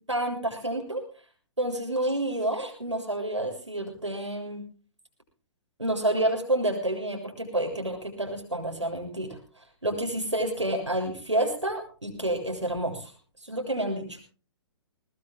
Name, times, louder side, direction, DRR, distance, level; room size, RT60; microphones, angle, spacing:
voice 1, 0.1-1.0 1.6-4.6 5.8-13.1 13.4-14.2, right 1 dB, 85° right, 2 dB, 7.2 m, -29 dB
22.5 x 21.0 x 2.2 m, 0.38 s
figure-of-eight pair, 120°, 15 cm